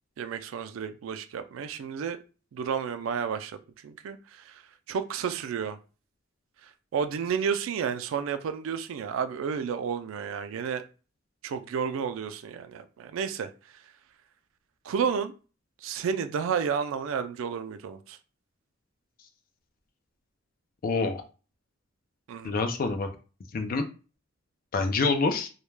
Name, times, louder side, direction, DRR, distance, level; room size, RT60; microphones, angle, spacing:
voice 1, 0.2-2.2 2.5-4.6 4.9-5.8 6.9-10.8 11.4-13.5 14.9-15.3 15.8-18.2 22.3-22.6, right 7 dB, 85° right, 0.3 m, -31 dB
voice 2, 20.8-21.2 22.4-23.1 23.5-23.8 24.7-25.5, left 3 dB, 45° left, 0.4 m, -26 dB
2.2 x 2.1 x 3.1 m
head